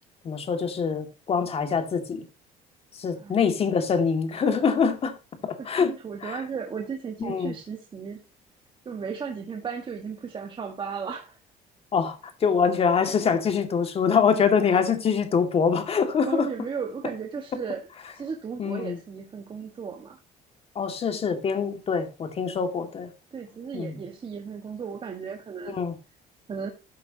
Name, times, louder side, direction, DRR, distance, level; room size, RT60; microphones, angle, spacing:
voice 1, 0.2-2.2 3.0-5.1 5.4-5.9 6.2-6.4 7.3-7.5 11.9-16.5 18.6-19.0 20.8-23.1 23.7-23.9 25.7-25.9, left 6 dB, 40° left, 2.1 m, -24 dB
voice 2, 5.4-8.2 8.8-11.4 16.3-17.9 18.1-20.2 23.3-25.8 26.5-26.7, right 6 dB, 35° right, 1.5 m, -35 dB
13.0 x 8.3 x 2.9 m
cardioid pair, 120°, 16 cm